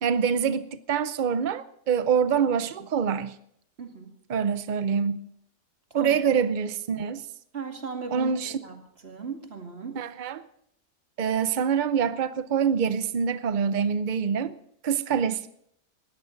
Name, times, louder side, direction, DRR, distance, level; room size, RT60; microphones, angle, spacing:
voice 1, 0.0-3.4 4.3-5.3 5.9-7.3 8.1-8.6 9.9-10.4 11.2-14.6 14.8-15.5, right 7 dB, 75° right, 0.4 m, -25 dB
voice 2, 3.8-4.1 5.9-6.2 7.5-8.7 9.0-10.0, right 5 dB, 35° right, 2.5 m, -37 dB
20.0 x 14.5 x 3.9 m
omnidirectional pair, 1.8 m